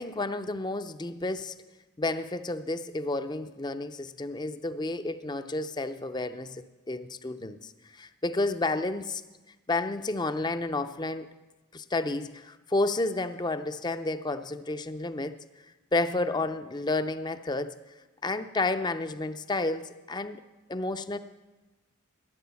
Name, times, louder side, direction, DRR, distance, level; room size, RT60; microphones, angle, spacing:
voice 1, 0.0-1.6 2.0-9.2 9.7-11.3 11.7-15.4 15.9-17.7 18.2-20.4 20.7-21.2, left 2 dB, 20° left, 11 dB, 0.5 m, -31 dB
13.5 x 10.0 x 7.1 m, 1.2 s
head